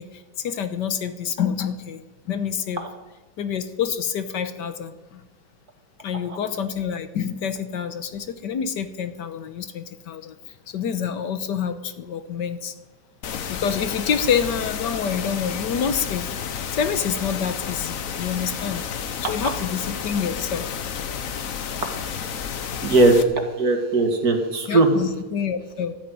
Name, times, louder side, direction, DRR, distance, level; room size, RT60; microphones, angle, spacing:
voice 1, 0.0-2.8 3.4-5.2 6.0-10.3 10.7-12.7 13.5-18.9 19.3-20.8 24.7-25.9, left 7 dB, 70° left, 10 dB, 1.6 m, -27 dB
sound 1, 13.2-23.2, left 7 dB, 55° left, 1.2 m, -31 dB
voice 2, 22.8-23.2 23.6-24.9, right 2 dB, 55° right, 4 dB, 2.4 m, -18 dB
13.0 x 10.0 x 9.3 m, 1.1 s
omnidirectional pair, 2.0 m